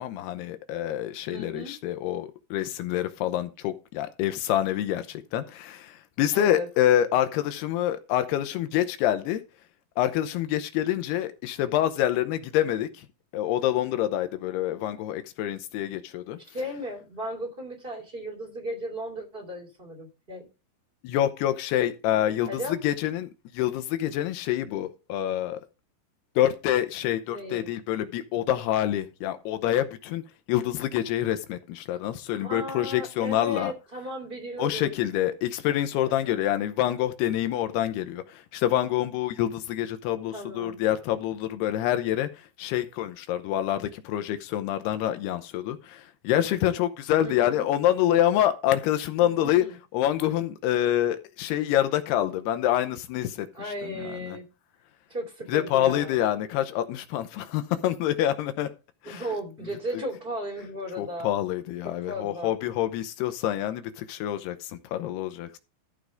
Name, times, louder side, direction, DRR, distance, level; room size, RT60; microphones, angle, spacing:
voice 1, 0.0-9.4 10.0-13.1 13.3-16.4 21.0-25.6 26.4-30.2 30.5-33.7 34.6-42.3 42.6-49.7 49.9-54.4 55.5-58.7 59.0-59.2 61.0-65.6, left 12 dB, 85° left, 2.8 m, -26 dB
voice 2, 1.3-1.7 6.3-6.7 16.5-20.5 22.5-22.8 27.3-27.7 32.4-34.9 36.0-36.4 40.3-40.8 47.2-47.7 49.2-49.8 53.5-54.4 55.1-56.2 59.0-61.3 61.8-62.6, equal, 15° right, 2.3 m, -36 dB
14.0 x 4.7 x 5.1 m
omnidirectional pair, 4.6 m